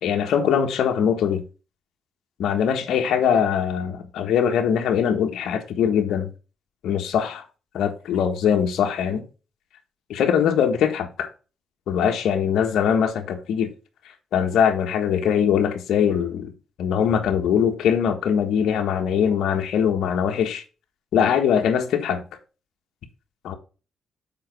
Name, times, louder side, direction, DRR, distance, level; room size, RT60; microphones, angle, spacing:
voice 1, 0.0-1.4 2.4-6.3 6.8-7.4 7.7-9.2 10.1-11.3 11.9-13.7 14.3-16.5 16.8-20.6 21.1-22.2 23.4-23.5, left 8 dB, 75° left, 1.4 m, -22 dB
7.5 x 4.9 x 4.5 m
cardioid pair, 90°, 0 cm